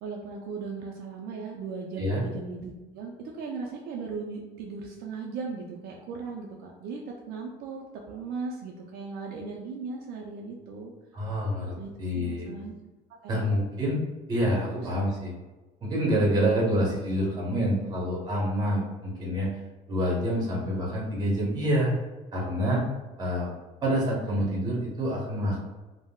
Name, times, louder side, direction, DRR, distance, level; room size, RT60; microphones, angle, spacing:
voice 1, 0.0-10.9 11.8-12.7 13.2-13.5 14.8-14.9 16.1-16.5 20.3-20.6, right 4 dB, 65° right, 0 dB, 0.4 m, -38 dB
voice 2, 11.1-12.5 13.3-14.0 14.3-15.3 15.8-19.5 19.9-21.9 22.3-22.8 23.2-23.5 23.8-25.6, equal, 25° right, -4 dB, 0.8 m, -27 dB
3.5 x 2.0 x 2.2 m, 1.1 s
cardioid pair, 150°, 17 cm